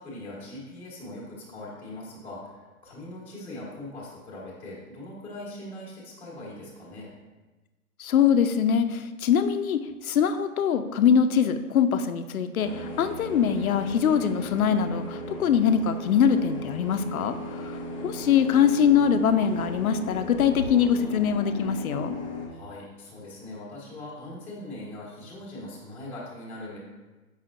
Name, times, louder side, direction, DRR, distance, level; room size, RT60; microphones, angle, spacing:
voice 1, 0.0-7.1 22.5-26.8, left 1 dB, 5° left, -8 dB, 1.1 m, -41 dB
voice 2, 8.0-22.1, left 7 dB, 70° left, 10 dB, 0.6 m, -23 dB
sound 1, 12.6-22.5, left 1 dB, 25° left, 0.5 m, -36 dB
7.3 x 5.5 x 2.5 m, 1.2 s
hypercardioid pair, 150°, 45 cm